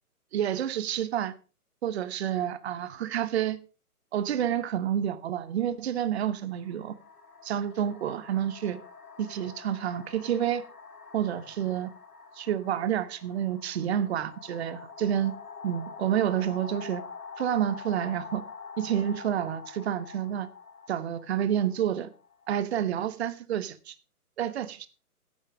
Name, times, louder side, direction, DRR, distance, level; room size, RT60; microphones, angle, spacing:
voice 1, 0.3-1.3 1.8-3.6 4.1-6.9 7.4-8.8 9.2-10.6 11.1-11.9 12.3-15.3 15.6-17.0 17.4-18.4 18.8-20.5 20.9-22.1 22.5-23.9 24.4-24.9, right 10 dB, 45° right, 1.1 m, -29 dB
sound 1, 5.1-5.3 6.2-22.9, left 5 dB, 75° left, 2.3 m, -46 dB
10.5 x 9.0 x 4.9 m
figure-of-eight pair, 140°, 45 cm